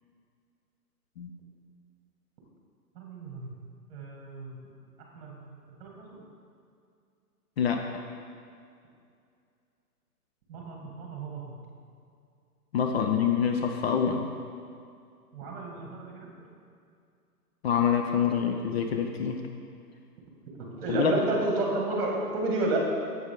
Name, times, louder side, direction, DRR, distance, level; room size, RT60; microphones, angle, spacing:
voice 1, 3.0-3.5 3.9-4.6 5.1-5.5 5.8-6.2 10.5-11.6 15.3-16.3 20.5-22.8, right 2 dB, 40° right, -1 dB, 2.1 m, -32 dB
voice 2, 7.6-7.9 12.7-14.2 17.6-19.4 20.9-21.2, left 7 dB, 40° left, 3 dB, 0.7 m, -26 dB
9.4 x 7.9 x 3.8 m, 2.4 s
hypercardioid pair, 135°, 47 cm